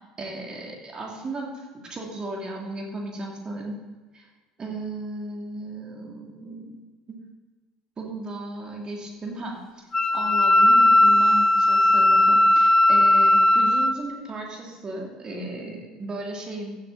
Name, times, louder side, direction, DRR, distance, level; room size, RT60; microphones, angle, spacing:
voice 1, 0.2-3.8 4.1-4.3 4.6-6.8 7.1-7.2 8.0-9.6 10.1-16.8, right 2 dB, 25° right, 0 dB, 2.7 m, -35 dB
Wind instrument woodwind instrument, 9.9-14.0, left 1 dB, 20° left, 0.5 m, -17 dB
14.5 x 7.0 x 4.1 m, 1.3 s
figure-of-eight pair, 65°, 3 cm